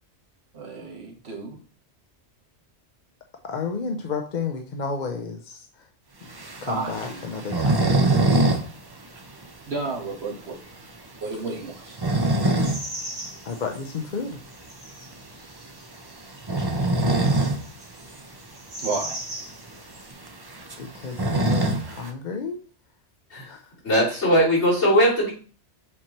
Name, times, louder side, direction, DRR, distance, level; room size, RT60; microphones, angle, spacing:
voice 1, 0.5-1.6 6.6-7.3 9.7-10.6 11.2-12.0 18.8-19.2, right 3 dB, 60° right, 1 dB, 1.6 m, -32 dB
voice 2, 3.4-5.9 6.6-7.8 13.4-14.4 20.8-22.6 23.4-23.6, left 5 dB, 50° left, 4 dB, 0.7 m, -31 dB
sound 1, 6.3-8.6 8.9-9.0 9.4-9.5 10.0-10.1 11.7-12.9 13.3-13.4 14.9-15.1 16.3-17.6 18.0-18.1 18.3-18.4 19.1-19.2 19.5-22.1, right 2 dB, 25° right, 0.6 m, -23 dB
sound 2, 11.3-14.0 14.5-20.1, right 1 dB, 80° right, 2.4 m, -40 dB
voice 3, 23.8-25.3, equal, 75° left, -7 dB, 3.4 m, -19 dB
7.6 x 4.4 x 3.0 m, 0.39 s
omnidirectional pair, 1.2 m